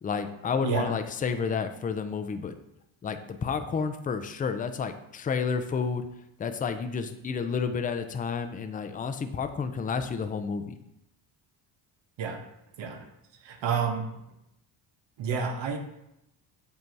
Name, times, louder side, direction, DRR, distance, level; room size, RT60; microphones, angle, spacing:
voice 1, 0.0-2.6 3.0-6.0 6.4-10.8, left 5 dB, 20° left, 8 dB, 0.4 m, -30 dB
voice 2, 0.6-0.9 12.2-12.5 12.8-13.1 13.4-14.2 15.2-15.8, right 6 dB, 65° right, 5 dB, 1.0 m, -30 dB
7.5 x 2.7 x 4.5 m, 0.83 s
cardioid pair, 100°, 46 cm